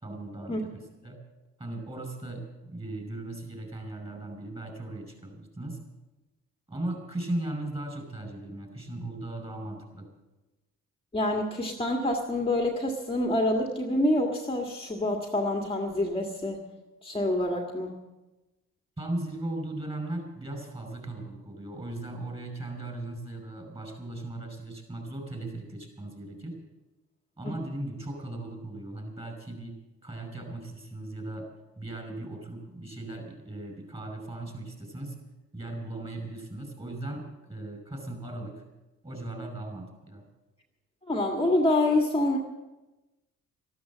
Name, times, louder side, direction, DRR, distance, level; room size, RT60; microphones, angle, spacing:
voice 1, 0.0-1.2 1.6-5.8 6.7-10.1 19.0-26.6 27.4-29.8 30.0-31.5 31.8-35.1 35.5-38.6 39.0-40.2, right 1 dB, 20° right, 4 dB, 5.5 m, -37 dB
voice 2, 11.1-16.6 17.0-17.9 27.5-27.6 41.1-42.4, left 1 dB, 20° left, 2 dB, 1.8 m, -26 dB
13.0 x 12.5 x 7.3 m, 1.1 s
cardioid pair, 90°, 30 cm